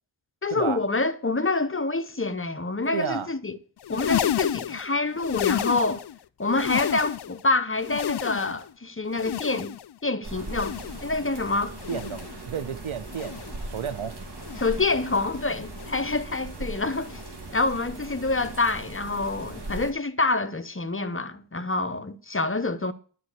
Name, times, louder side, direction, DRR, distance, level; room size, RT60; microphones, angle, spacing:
voice 1, 0.4-3.6 3.9-6.0 6.4-9.7 10.0-10.7 11.0-11.8 14.6-17.2 17.5-22.9, left 3 dB, 25° left, 0.9 m, -27 dB
voice 2, 2.8-3.3 11.9-14.1, right 7 dB, 80° right, 1.1 m, -32 dB
sound 1, 3.8-6.2 6.5-7.4 7.8-8.7 9.1-10.0 10.4-11.2 11.7-12.4 13.1-13.6 14.4-14.9 15.7-16.2 17.1-17.4 18.4-18.6 19.7-19.8, left 10 dB, 55° left, 0.6 m, -31 dB
sound 2, 10.2-19.9, right 2 dB, 55° right, 2.9 m, -39 dB
11.5 x 4.8 x 8.3 m
wide cardioid pair, 65°, 48 cm